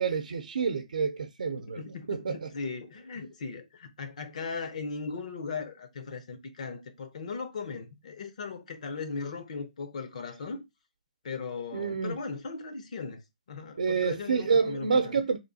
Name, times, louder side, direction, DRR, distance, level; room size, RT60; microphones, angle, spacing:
voice 1, 0.0-1.8 2.1-2.5 11.7-12.2 13.8-15.4, right 5 dB, 80° right, 0.6 m, -28 dB
voice 2, 1.6-10.6 11.2-13.2 13.5-15.2, left 4 dB, 60° left, 0.9 m, -38 dB
3.1 x 2.8 x 4.0 m
hypercardioid pair, 160°, 4 cm